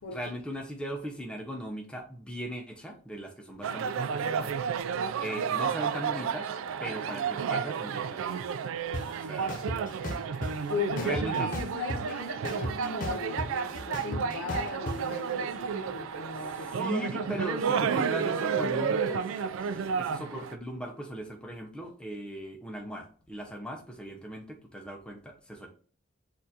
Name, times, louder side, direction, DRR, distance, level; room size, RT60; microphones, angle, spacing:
voice 1, 0.1-4.5 5.2-6.5 6.8-8.6 9.1-9.6 11.0-11.5 16.5-25.7, equal, 5° left, 0.6 m, -38 dB
sound 1, 3.6-20.6, right 6 dB, 75° right, 0.3 m, -31 dB
sound 2, 8.9-9.0 9.5-10.5 11.0-12.1 12.4-15.0, left 1 dB, 40° left, 0.8 m, -34 dB
voice 2, 10.5-17.5, left 4 dB, 80° left, 0.5 m, -38 dB
6.4 x 2.5 x 2.7 m
head